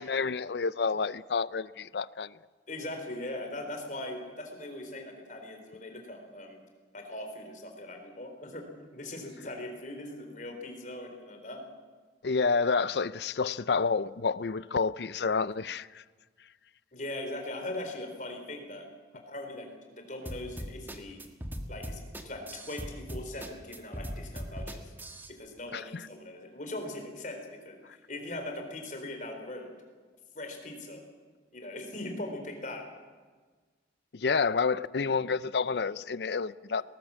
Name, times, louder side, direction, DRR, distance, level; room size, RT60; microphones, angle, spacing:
voice 1, 0.0-2.4 12.2-16.0 25.7-26.1 34.1-36.8, left 5 dB, 65° left, 18 dB, 0.5 m, -29 dB
voice 2, 2.7-6.6 6.9-8.7 8.9-11.6 16.9-18.9 19.3-21.2 21.7-24.9 25.3-27.8 28.1-29.7 30.3-31.0 31.5-32.9, left 1 dB, 45° left, 3 dB, 3.9 m, -40 dB
sound 1, 20.3-25.3, equal, 10° right, 1.5 m, -39 dB
19.5 x 18.5 x 7.5 m, 1.4 s
head